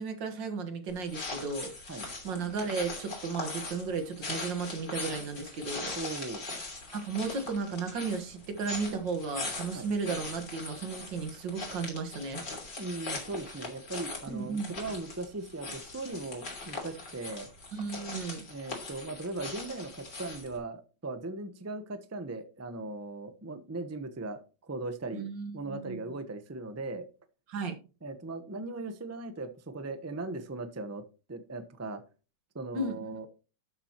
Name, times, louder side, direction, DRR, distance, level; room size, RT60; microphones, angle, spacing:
voice 1, 0.0-1.7 2.2-5.9 6.9-12.4 14.3-14.7 17.7-18.4 25.1-26.1 27.5-27.7 32.7-33.1, right 4 dB, 80° right, 6 dB, 2.2 m, -34 dB
sound 1, 0.9-20.6, left 3 dB, 65° left, 3.7 m, -41 dB
voice 2, 6.0-6.4 9.7-9.9 12.8-17.5 18.5-25.3 25.5-27.1 28.0-31.0 31.3-32.0 32.5-33.3, right 2 dB, 15° right, 9 dB, 0.5 m, -38 dB
12.0 x 7.3 x 3.0 m, 0.33 s
omnidirectional pair, 2.0 m